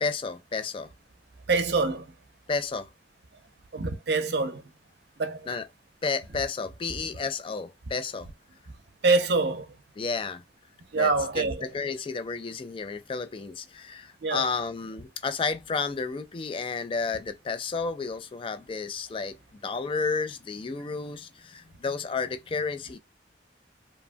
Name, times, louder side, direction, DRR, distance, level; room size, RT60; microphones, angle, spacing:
voice 1, 0.0-0.9 2.5-2.9 5.5-5.7 6.0-8.3 10.0-10.4 10.9-23.0, left 4 dB, 30° left, 0.3 m, -32 dB
voice 2, 1.5-2.1 3.7-4.6 5.2-5.5 9.0-9.7 10.9-11.6 14.2-14.4, right 3 dB, 65° right, 0.6 m, -25 dB
2.8 x 2.2 x 2.5 m
head